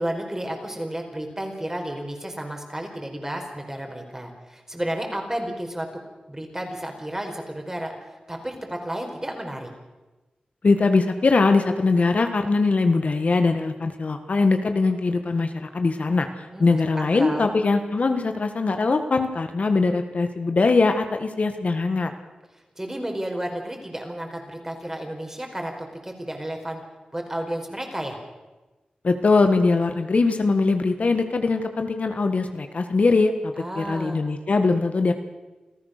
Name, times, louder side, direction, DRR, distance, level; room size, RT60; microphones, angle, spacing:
voice 1, 0.0-5.9 6.3-9.7 16.5-17.5 22.8-26.8 27.1-28.2 33.6-34.2, right 1 dB, 20° right, 3 dB, 4.7 m, -32 dB
voice 2, 10.6-22.1 29.0-35.1, left 3 dB, 60° left, 7 dB, 1.6 m, -21 dB
27.5 x 15.0 x 6.7 m, 1.1 s
wide cardioid pair, 75°, 3 cm